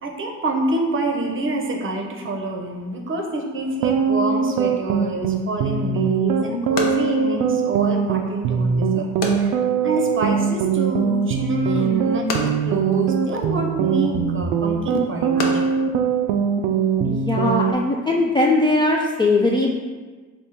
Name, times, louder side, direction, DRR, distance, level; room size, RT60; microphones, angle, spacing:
voice 1, 0.0-15.8, right 2 dB, 35° right, 2 dB, 0.7 m, -27 dB
sound 1, 3.7-17.7, right 6 dB, 65° right, 0.5 m, -21 dB
sound 2, 5.7-17.1, left 3 dB, 60° left, 0.8 m, -35 dB
voice 2, 17.0-19.7, left 2 dB, 15° left, -2 dB, 0.3 m, -20 dB
3.5 x 2.3 x 4.2 m, 1.4 s
hypercardioid pair, 65°, 38 cm